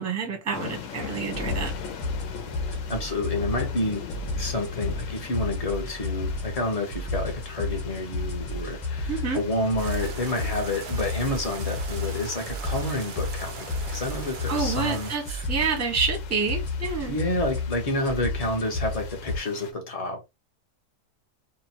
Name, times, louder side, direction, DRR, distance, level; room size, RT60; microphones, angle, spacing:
voice 1, 0.0-1.7 9.1-9.4 14.5-17.2, right 5 dB, 15° right, 0.6 m, -28 dB
sound 1, 0.5-19.7, left 8 dB, 65° left, 0.9 m, -42 dB
sound 2, 1.0-19.4, left 2 dB, 25° left, 0.9 m, -32 dB
voice 2, 2.7-4.1 4.3-15.4 17.1-20.3, left 1 dB, 40° left, 0.5 m, -29 dB
sound 3, 9.8-15.2, right 7 dB, 75° right, 0.5 m, -41 dB
2.8 x 2.1 x 2.8 m
omnidirectional pair, 1.6 m